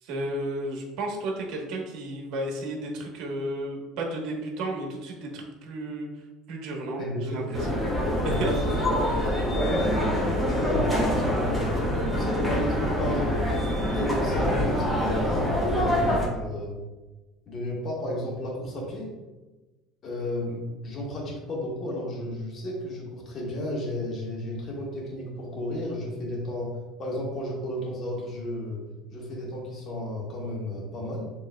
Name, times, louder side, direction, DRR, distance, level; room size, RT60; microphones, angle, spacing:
voice 1, 0.0-6.1 6.5-7.8 8.2-8.5, right 1 dB, 65° right, 0 dB, 1.1 m, -33 dB
voice 2, 6.8-7.5 8.2-10.0 10.3-11.7 12.1-16.8 17.5-19.2 20.0-26.7 27.0-28.8 29.1-31.3, left 1 dB, 40° left, -3 dB, 1.5 m, -33 dB
sound 1, 7.5-16.3, equal, 5° left, 1.1 m, -25 dB
7.2 x 3.0 x 2.2 m, 1.2 s
cardioid pair, 130°, 0 cm